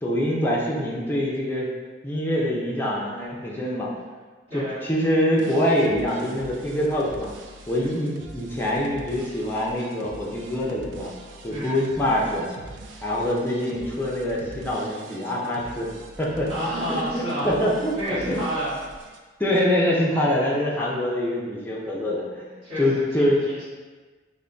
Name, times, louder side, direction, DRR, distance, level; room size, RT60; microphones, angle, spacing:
voice 1, 0.0-1.7 2.0-3.9 4.5-7.3 7.7-11.1 11.4-12.5 13.0-15.9 16.2-16.5 16.9-18.4 19.4-22.5 22.8-23.4, left 1 dB, 10° left, -4 dB, 0.4 m, -24 dB
sound 1, 5.4-19.2, right 2 dB, 85° right, 0.4 m, -43 dB
voice 2, 11.5-11.8 16.3-17.6 17.9-18.8 20.7-21.2 22.6-23.6, right 1 dB, 35° right, -16 dB, 1.3 m, -31 dB
3.4 x 2.1 x 3.8 m, 1.3 s
head